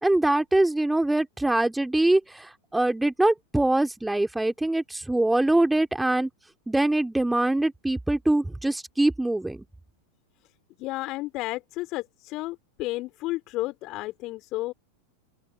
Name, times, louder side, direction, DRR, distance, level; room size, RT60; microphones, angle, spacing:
voice 1, 0.0-6.3 6.7-9.6, right 2 dB, 5° right, 3.3 m, -23 dB
voice 2, 10.8-14.7, left 19 dB, 40° left, 4.8 m, -32 dB
open air
figure-of-eight pair, 90°, 0 cm